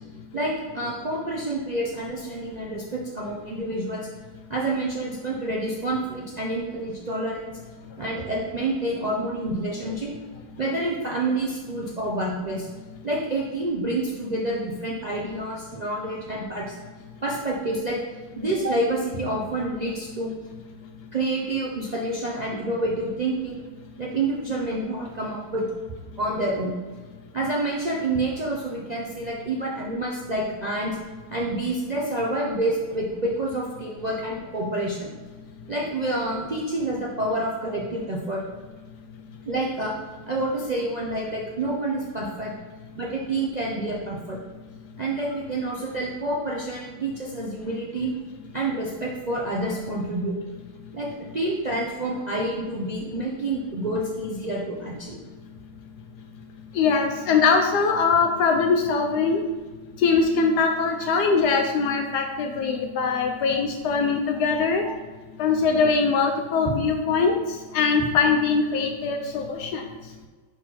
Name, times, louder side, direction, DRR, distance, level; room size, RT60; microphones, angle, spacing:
voice 1, 0.3-4.1 4.5-7.5 8.0-10.1 10.6-12.7 13.0-16.8 17.2-18.0 18.4-20.3 21.1-23.6 24.0-25.7 26.2-26.7 27.3-31.0 31.3-35.1 35.7-38.4 39.4-40.0 40.3-42.5 42.9-44.4 45.0-48.1 48.5-50.3 50.9-55.2 63.5-63.6 66.7-66.8, right 2 dB, 60° right, -4 dB, 0.4 m, -28 dB
voice 2, 56.7-59.4 60.0-64.8 65.4-67.3 67.7-69.8, left 5 dB, 75° left, 3 dB, 1.1 m, -22 dB
4.7 x 4.1 x 5.6 m, 1.4 s
omnidirectional pair, 1.9 m